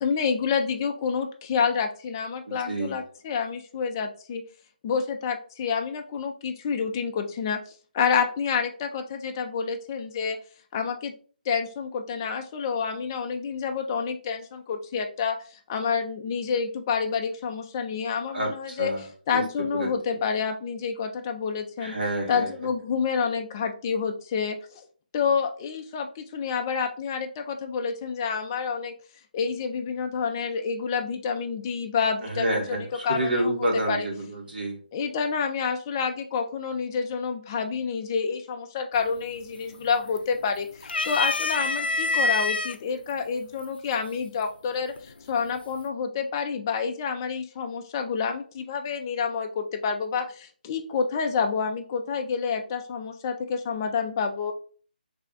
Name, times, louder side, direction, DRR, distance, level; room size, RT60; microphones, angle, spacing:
voice 1, 0.0-4.4 4.8-7.6 7.9-10.4 10.7-11.1 11.5-18.9 19.3-21.9 22.3-24.8 25.1-28.9 29.3-32.5 33.0-33.5 33.9-34.0 34.9-54.5, left 6 dB, 25° left, 5 dB, 0.4 m, -28 dB
voice 2, 2.5-3.0 18.3-19.0 19.3-19.4 19.7-19.9 21.8-22.7 32.2-34.8, right 1 dB, 70° right, -1 dB, 1.6 m, -29 dB
sound 1, 39.0-39.4 39.7-40.4 40.8-42.7 43.6-43.7 45.0-45.4, left 3 dB, 85° left, 0.4 m, -26 dB
3.4 x 2.3 x 3.7 m, 0.41 s
figure-of-eight pair, 160°, 5 cm